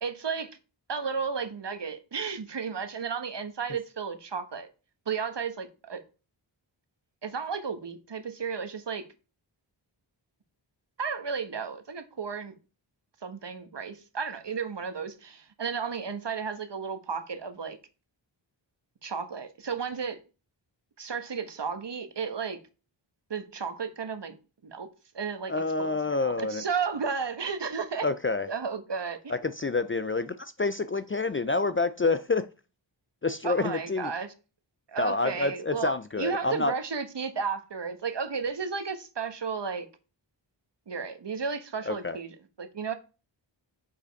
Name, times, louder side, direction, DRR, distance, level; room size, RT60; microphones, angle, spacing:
voice 1, 0.0-0.6 0.9-4.7 5.1-6.0 7.2-9.0 11.0-12.5 13.2-17.8 19.0-20.2 21.0-22.6 23.3-24.4 24.6-24.9 25.1-25.5 25.8-28.1 28.5-29.3 33.4-34.3 34.9-39.9 40.9-42.9, right 5 dB, 60° right, 1.2 m, -33 dB
voice 2, 25.5-26.6 28.0-28.5 29.3-32.5 33.2-34.1 35.0-36.7 41.9-42.2, left 3 dB, 30° left, 0.4 m, -28 dB
6.9 x 5.0 x 5.2 m
wide cardioid pair, 85°, 47 cm